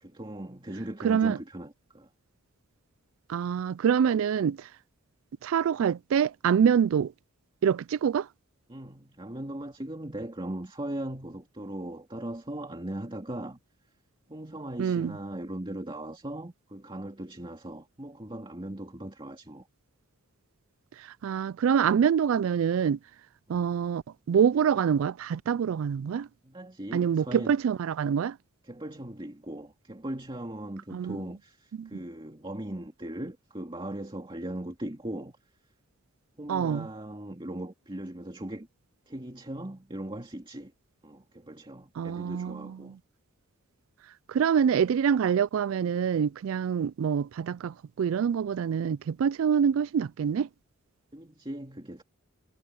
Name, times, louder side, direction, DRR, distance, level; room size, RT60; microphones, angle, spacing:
voice 1, 0.0-2.1 8.7-13.6 14.3-19.7 23.5-23.6 26.4-27.5 28.6-35.4 36.4-38.7 39.1-40.7 41.0-43.0 51.1-52.0, right 1 dB, 25° right, 2.3 m, -39 dB
voice 2, 1.0-1.4 3.3-4.7 5.4-7.1 7.6-8.3 14.8-15.1 21.0-23.0 23.5-26.3 26.9-28.4 30.9-31.2 31.8-31.9 36.5-36.9 42.0-43.0 44.3-50.5, right 7 dB, 70° right, 0.3 m, -26 dB
head